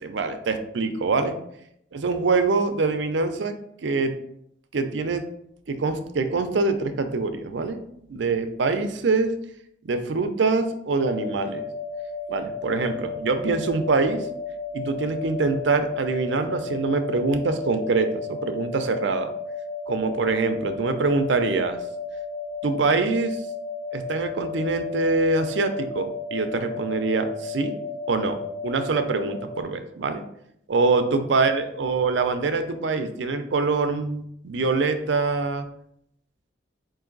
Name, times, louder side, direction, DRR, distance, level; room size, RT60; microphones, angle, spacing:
voice 1, 0.0-1.3 1.9-3.5 3.8-4.2 4.7-5.3 5.7-7.8 8.1-9.4 9.8-11.6 12.3-14.3 14.7-19.3 19.9-21.8 22.6-23.4 23.9-27.8 28.1-28.4 28.6-30.2 30.7-35.7, right 3 dB, 70° right, 8 dB, 0.5 m, -24 dB
sound 1, 11.0-29.6, left 4 dB, 45° left, 1.2 m, -34 dB
4.7 x 2.6 x 3.8 m, 0.74 s
head